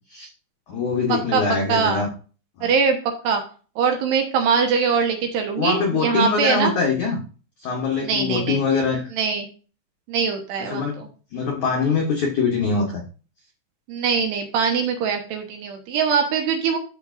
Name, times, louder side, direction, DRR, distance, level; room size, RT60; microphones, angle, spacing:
voice 1, 0.7-2.1 2.6-2.7 5.6-7.2 7.6-9.1 10.6-13.0, left 4 dB, 75° left, 0 dB, 1.7 m, -23 dB
voice 2, 1.7-2.1 2.6-3.4 3.8-6.7 8.0-8.6 9.1-9.5 10.1-11.1 13.9-16.8, right 6 dB, 70° right, 3 dB, 2.9 m, -22 dB
13.5 x 6.7 x 2.6 m, 0.37 s
omnidirectional pair, 5.8 m